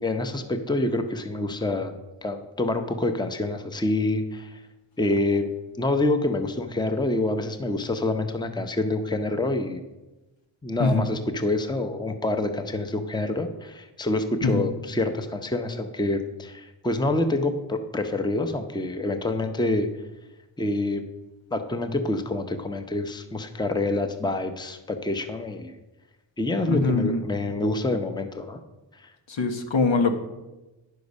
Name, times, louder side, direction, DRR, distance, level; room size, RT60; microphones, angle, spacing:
voice 1, 0.0-1.9 2.2-4.6 5.0-5.5 5.8-9.8 10.6-19.9 20.6-21.0 21.5-25.7 26.4-28.6 29.0-29.1, left 2 dB, 10° left, 7 dB, 0.8 m, -27 dB
voice 2, 26.7-27.2 29.3-30.1, left 3 dB, 65° left, 6 dB, 1.3 m, -22 dB
10.0 x 6.6 x 5.4 m, 1.1 s
cardioid pair, 65°, 48 cm